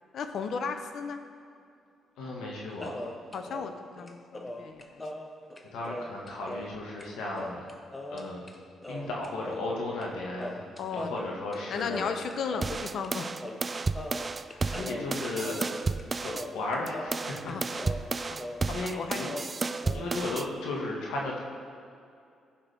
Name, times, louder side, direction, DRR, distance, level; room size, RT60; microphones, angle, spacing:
voice 1, 0.1-1.2 3.3-5.0 10.8-11.1 11.7-13.3 17.4-17.6 18.3-18.4 18.9-19.3 19.8-20.0, left 5 dB, 65° left, 7 dB, 0.8 m, -35 dB
voice 2, 2.2-3.1 5.7-7.6 8.1-8.5 8.9-10.6 10.9-12.1 14.5-15.6 16.2-17.9 18.7-19.3 19.9-21.4, left 2 dB, 90° left, -2 dB, 1.8 m, -35 dB
sound 1, 2.8-6.8 7.0-7.1 7.3-8.6 8.8-10.1 10.4-12.8 13.0-13.2 13.4-18.7 18.9-20.0, left 1 dB, 20° left, 0.8 m, -40 dB
sound 2, 12.6-16.5 16.9-20.5, right 3 dB, 30° right, 0.3 m, -32 dB
15.0 x 6.0 x 3.6 m, 2.4 s
cardioid pair, 90°, 0 cm